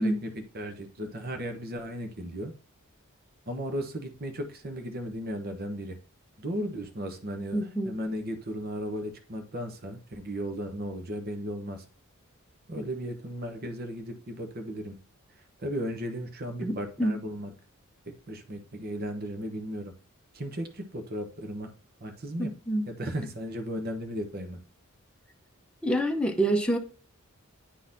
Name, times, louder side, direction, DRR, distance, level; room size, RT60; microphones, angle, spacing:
voice 1, 0.0-2.5 3.5-6.0 6.4-11.8 12.7-15.0 15.6-17.5 18.3-19.9 20.3-21.7 22.0-22.5 22.9-24.6, equal, 45° right, 1.0 m, -35 dB
voice 2, 7.5-8.0 16.6-17.2 22.4-22.9 25.8-26.8, right 1 dB, 5° left, 0.7 m, -27 dB
10.0 x 3.9 x 2.6 m
head